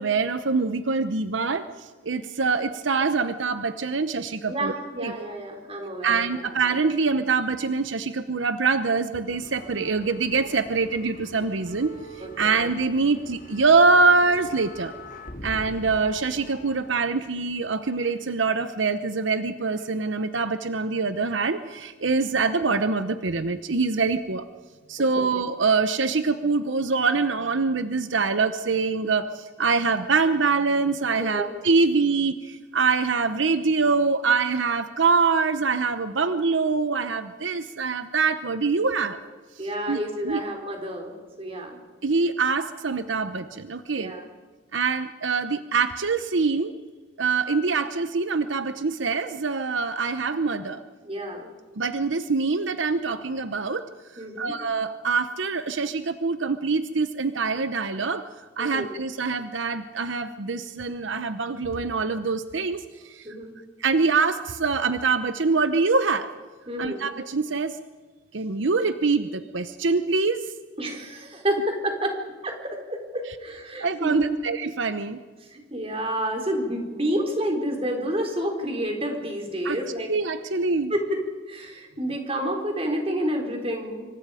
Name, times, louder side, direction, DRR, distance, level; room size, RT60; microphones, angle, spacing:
voice 1, 0.0-4.7 5.0-5.3 6.0-14.9 15.4-24.5 24.9-39.2 39.9-40.0 40.2-40.4 42.0-44.1 44.7-46.7 47.2-50.8 51.8-53.9 54.4-58.2 58.6-63.3 63.8-66.3 66.8-67.8 68.3-70.5 73.8-75.2 79.6-79.8 80.1-80.9, right 4 dB, 80° right, 11 dB, 0.9 m, -24 dB
voice 2, 4.5-6.7 12.2-12.6 25.1-25.3 31.2-31.5 39.6-41.1 41.4-41.8 44.0-44.3 51.0-51.5 54.2-54.5 58.6-58.9 63.2-63.5 66.7-67.0 70.8-74.4 75.4-80.1 80.9-84.1, equal, 30° right, 2 dB, 4.2 m, -29 dB
sound 1, 9.2-18.7 19.6-20.7 21.0-21.2 22.1-22.2, right 1 dB, 45° left, 2.8 m, -43 dB
26.5 x 25.0 x 5.1 m, 1.4 s
head